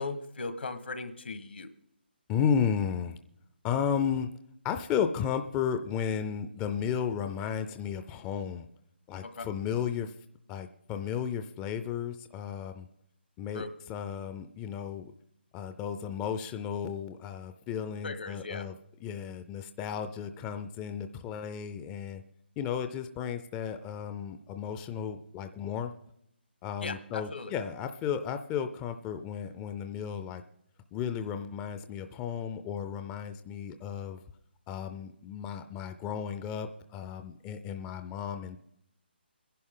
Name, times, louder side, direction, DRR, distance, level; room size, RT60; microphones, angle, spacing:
voice 1, 0.0-1.7 9.2-9.5 13.5-13.7 18.0-18.7 26.8-27.5, left 3 dB, 75° left, 11 dB, 1.4 m, -38 dB
voice 2, 2.3-3.2 3.6-4.3 4.6-8.7 9.1-10.1 10.5-12.9 13.4-15.1 15.5-18.7 19.0-22.2 22.6-25.9 26.6-30.4 30.9-34.2 34.7-38.6, left 7 dB, 15° left, 9 dB, 0.4 m, -34 dB
21.0 x 11.0 x 3.8 m, 0.77 s
hypercardioid pair, 155°, 6 cm